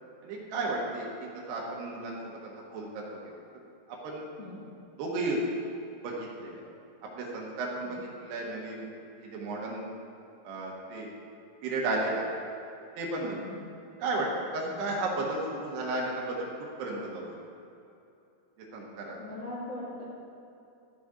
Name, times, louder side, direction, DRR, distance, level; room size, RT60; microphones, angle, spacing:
voice 1, 0.2-2.2 2.6-3.0 3.9-4.2 5.0-5.4 6.0-6.6 7.2-8.9 9.2-9.8 10.4-11.1 11.6-12.3 13.0-13.4 14.0-14.3 14.5-16.5 16.8-17.3 18.7-19.1, right 2 dB, 70° right, -2 dB, 2.8 m, -33 dB
voice 2, 13.4-13.7 14.6-14.9 19.2-20.0, left 2 dB, 85° left, -10 dB, 1.4 m, -41 dB
14.0 x 5.1 x 5.0 m, 2.7 s
omnidirectional pair, 5.8 m